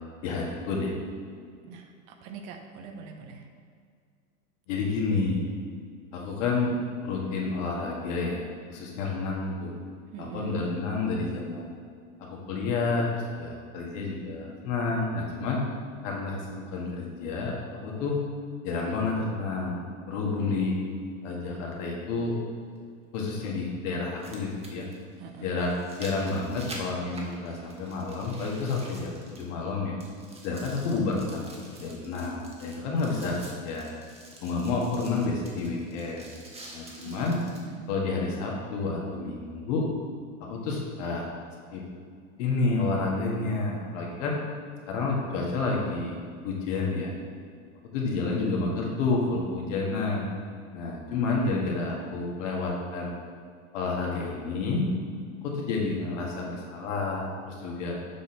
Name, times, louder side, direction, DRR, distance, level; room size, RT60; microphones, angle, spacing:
voice 1, 0.2-0.9 4.7-5.4 6.1-6.7 7.0-9.7 10.2-11.7 12.2-15.6 16.0-17.5 17.8-18.2 18.6-20.8 21.2-22.3 23.1-24.9 25.4-25.7 26.0-30.0 30.4-33.9 34.4-36.3 36.7-37.4 37.9-39.9 40.4-41.2 41.7-41.8 42.4-44.4 44.9-46.2 46.4-47.2 47.8-50.2 50.7-53.1 53.7-54.9 55.4-58.0, left 3 dB, 60° left, -2 dB, 1.7 m, -30 dB
voice 2, 1.6-3.5 10.1-10.6 25.2-25.5 37.0-37.9, right 5 dB, 50° right, 5 dB, 0.9 m, -43 dB
sound 1, 20.7-20.8 22.8-22.9 24.0-29.7 30.0-37.7 38.3-38.4, right 2 dB, 15° right, 1.1 m, -47 dB
7.3 x 4.0 x 4.4 m, 2.1 s
hypercardioid pair, 105°, 41 cm